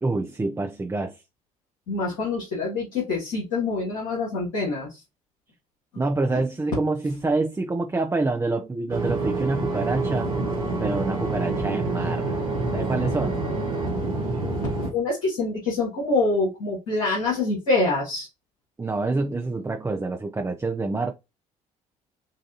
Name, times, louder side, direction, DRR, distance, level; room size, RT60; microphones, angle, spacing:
voice 1, 0.0-1.2 6.0-10.3 10.8-12.4 12.7-13.4 18.8-21.1, right 3 dB, 15° right, 0.6 m, -27 dB
voice 2, 1.9-5.0 14.9-18.3, left 3 dB, 80° left, 2.3 m, -25 dB
sound 1, 8.9-14.9, right 2 dB, 90° right, 1.2 m, -27 dB
6.6 x 2.6 x 2.9 m
hypercardioid pair, 50°, 18 cm